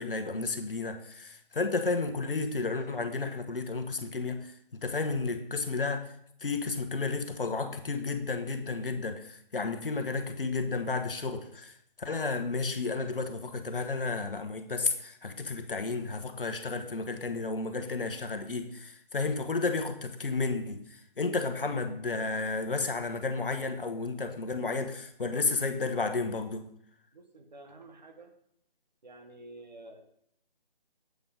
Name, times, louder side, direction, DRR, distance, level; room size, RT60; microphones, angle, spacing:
voice 1, 0.0-6.1 6.4-26.6, left 3 dB, 65° left, 1.1 m, -32 dB
voice 2, 27.1-28.3 29.0-30.0, right 2 dB, 50° right, 1.3 m, -50 dB
7.9 x 5.3 x 5.1 m
figure-of-eight pair, 160°, 29 cm